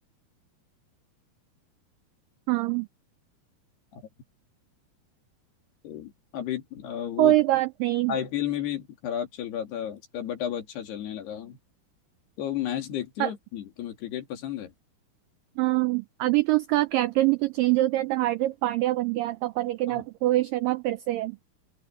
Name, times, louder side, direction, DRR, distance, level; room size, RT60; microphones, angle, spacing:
voice 1, 2.5-2.9 7.2-8.1 13.2-13.3 15.6-21.4, right 17 dB, 85° right, 1.9 m, -24 dB
voice 2, 5.8-7.4 8.1-11.6 12.4-14.7 19.9-20.1, left 10 dB, 75° left, 4.8 m, -33 dB
open air
omnidirectional pair, 4.7 m